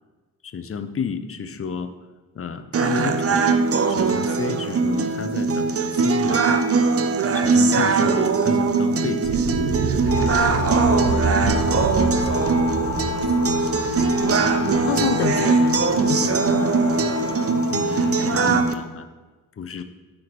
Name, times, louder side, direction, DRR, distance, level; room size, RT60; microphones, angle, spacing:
voice 1, 0.4-1.9 2.3-3.6 3.9-6.6 7.3-9.4 17.7-19.1 19.6-19.8, left 6 dB, 35° left, 9 dB, 0.6 m, -31 dB
sound 1, 2.7-18.7, right 4 dB, 35° right, 0.6 m, -21 dB
sound 2, 9.2-16.2, right 4 dB, 90° right, 0.8 m, -28 dB
sound 3, 10.1-18.4, left 6 dB, 50° left, 1.0 m, -30 dB
voice 2, 14.9-15.8 16.1-16.7, left 8 dB, 85° left, 11 dB, 0.6 m, -27 dB
9.1 x 5.1 x 3.1 m, 1.2 s
supercardioid pair, 50°, 40 cm